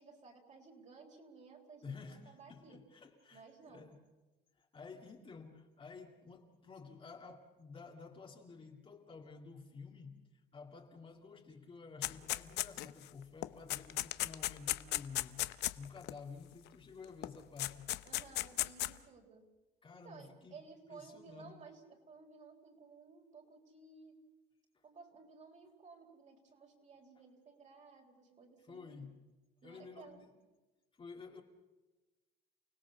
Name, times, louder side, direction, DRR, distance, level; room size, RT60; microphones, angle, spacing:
voice 1, 0.0-2.8 3.3-3.9 18.0-19.4 19.9-24.2 24.8-29.1 29.6-30.2, right 4 dB, 45° right, 4.5 m, -56 dB
voice 2, 1.8-4.1 4.5-15.5 15.7-17.9 19.8-20.6 20.9-21.6 28.6-29.2 29.6-30.3 30.9-31.4, left 5 dB, 30° left, 2.2 m, -52 dB
sound 1, 12.0-13.0 13.4-16.1 17.2-17.3 17.6-18.9, left 17 dB, 85° left, 0.8 m, -35 dB
29.5 x 17.5 x 7.1 m
cardioid pair, 110°, 17 cm